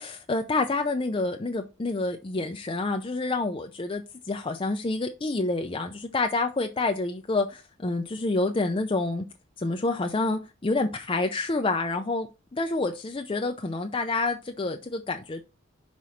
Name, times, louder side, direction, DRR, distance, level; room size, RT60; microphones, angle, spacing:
voice 1, 0.0-9.3 9.6-12.3 12.5-15.4, left 3 dB, 25° left, 0.5 m, -28 dB
5.8 x 4.1 x 6.3 m
head